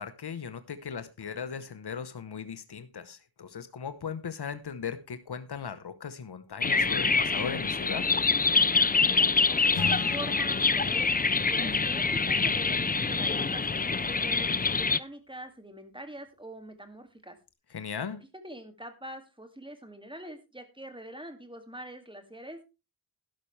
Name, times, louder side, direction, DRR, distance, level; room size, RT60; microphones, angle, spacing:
voice 1, 0.0-8.1 17.7-18.2, left 6 dB, 70° left, 1.0 m, -38 dB
sound 1, 6.6-15.0, left 4 dB, 20° left, 0.5 m, -25 dB
voice 2, 9.0-13.6 14.1-17.4 18.4-22.6, right 1 dB, 10° right, 2.3 m, -44 dB
Acoustic guitar / Strum, 9.7-13.2, left 4 dB, 90° left, 3.7 m, -41 dB
12.0 x 11.5 x 3.3 m
wide cardioid pair, 85°, 40 cm